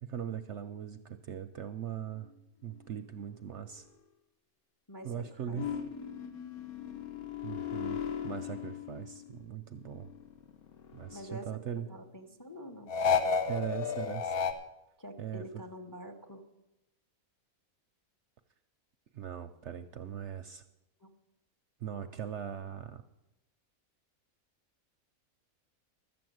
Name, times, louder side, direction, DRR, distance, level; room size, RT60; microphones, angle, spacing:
voice 1, 0.0-2.3 2.6-3.8 5.0-5.7 7.4-10.1 10.9-11.9 13.5-14.4 15.2-15.4 19.1-20.6 21.8-23.0, right 9 dB, 65° right, 9 dB, 0.8 m, -40 dB
voice 2, 4.9-5.6 11.1-11.6 11.9-12.9 15.0-16.4 21.0-21.1, equal, 20° left, 4 dB, 0.7 m, -46 dB
sound 1, 5.6-9.4 9.8-11.4 12.9-14.5, left 6 dB, 75° left, 1.4 m, -34 dB
12.5 x 7.9 x 7.8 m, 0.93 s
omnidirectional pair, 1.6 m